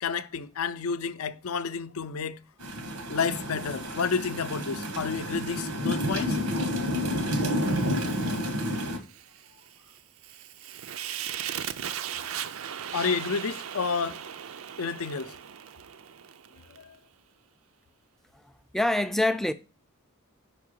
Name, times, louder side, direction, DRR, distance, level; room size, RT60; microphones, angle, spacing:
voice 1, 0.0-2.4 3.1-6.4 12.1-12.2 12.9-14.2 14.8-15.3 16.8-17.0, left 5 dB, 75° left, 0.5 m, -30 dB
sound 1, 2.6-9.0, equal, 90° right, 1.5 m, -30 dB
Fire, 7.6-16.8, right 9 dB, 70° right, 0.5 m, -38 dB
voice 2, 18.4-19.5, left 1 dB, ahead, 0.3 m, -26 dB
5.4 x 4.6 x 6.4 m
head